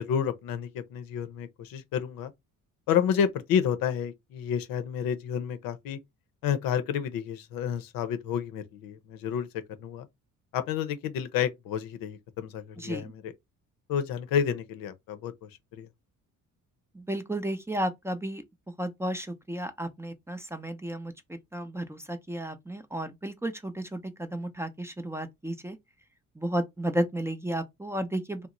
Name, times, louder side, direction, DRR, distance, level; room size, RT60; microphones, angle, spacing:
voice 1, 0.0-2.3 2.9-6.0 6.4-9.5 9.8-10.1 10.5-13.3 13.9-15.9, left 8 dB, 80° left, 0.6 m, -30 dB
voice 2, 12.8-13.1 16.9-18.4 18.8-25.8 26.4-28.5, right 1 dB, 10° right, 0.5 m, -33 dB
2.9 x 2.0 x 3.7 m
cardioid pair, 90°, 34 cm